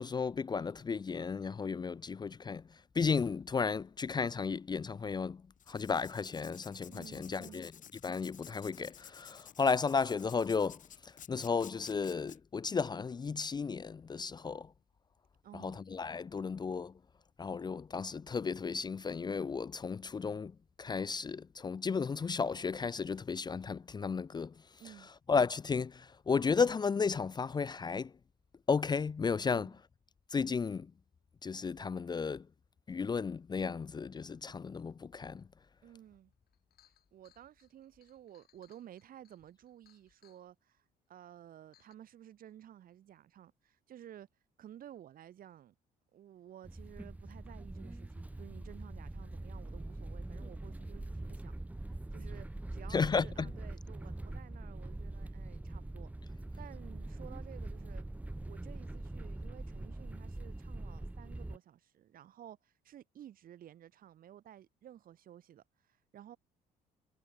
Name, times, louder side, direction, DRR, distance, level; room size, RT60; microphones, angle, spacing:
voice 1, 0.0-2.6 2.9-5.4 5.7-7.7 8.0-14.7 15.5-16.9 17.4-20.5 20.8-24.5 25.3-28.1 28.7-29.7 30.3-30.9 31.4-32.5 32.9-35.4 52.9-53.5, left 5 dB, 25° left, 0.6 m, -34 dB
Writing, 5.6-12.4, left 9 dB, 50° left, 3.7 m, -54 dB
voice 2, 6.9-7.6 15.4-15.8 24.8-25.1 29.5-29.7 35.8-36.3 37.1-44.3 44.6-45.7 46.1-51.5 52.1-58.1 58.5-66.4, right 11 dB, 60° right, 3.0 m, -54 dB
Chink clink, 36.1-36.2 36.5-40.5 41.2-41.3 41.7-41.9, left 13 dB, 65° left, 7.1 m, -69 dB
sound 1, 46.6-61.6, right 2 dB, 10° right, 1.5 m, -43 dB
cardioid pair, 110°, 17 cm